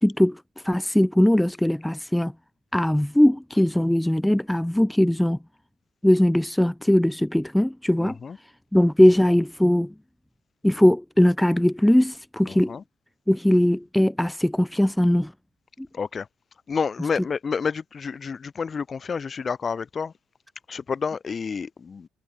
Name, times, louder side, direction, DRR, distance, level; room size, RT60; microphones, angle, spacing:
voice 1, 0.0-2.3 2.7-5.4 6.0-8.2 8.7-9.9 10.6-12.7 13.3-15.3 15.8-15.9, left 1 dB, 5° left, 2.8 m, -20 dB
voice 2, 8.0-8.4 12.5-12.8 15.9-16.3 16.7-20.1 20.7-22.1, left 5 dB, 40° left, 7.4 m, -29 dB
cardioid pair, 95°, 0 cm